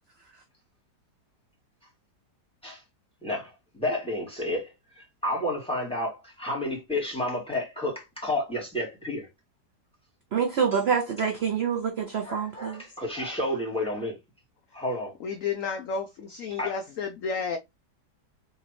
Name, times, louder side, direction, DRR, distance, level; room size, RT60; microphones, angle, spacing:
voice 1, 3.2-9.3 12.2-14.2 14.7-15.1 16.6-16.7, left 1 dB, 5° left, 2.5 m, -31 dB
voice 2, 10.3-12.8, right 6 dB, 55° right, 0.7 m, -26 dB
voice 3, 15.2-17.6, left 5 dB, 65° left, 0.8 m, -31 dB
4.2 x 3.8 x 3.0 m
omnidirectional pair, 1.8 m